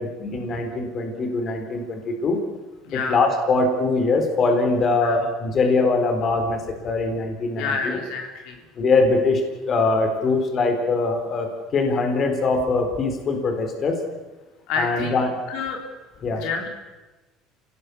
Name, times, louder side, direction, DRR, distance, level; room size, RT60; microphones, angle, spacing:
voice 1, 0.0-2.4 2.9-8.0 8.8-11.5 11.7-14.0 14.8-15.3 16.2-16.4, left 3 dB, 35° left, 5 dB, 4.0 m, -22 dB
voice 2, 2.8-3.2 5.0-5.2 7.6-8.6 14.7-15.2 15.5-15.8 16.3-16.7, left 5 dB, 70° left, 3 dB, 3.6 m, -28 dB
28.0 x 18.5 x 7.0 m, 1.1 s
cardioid pair, 140°, 0 cm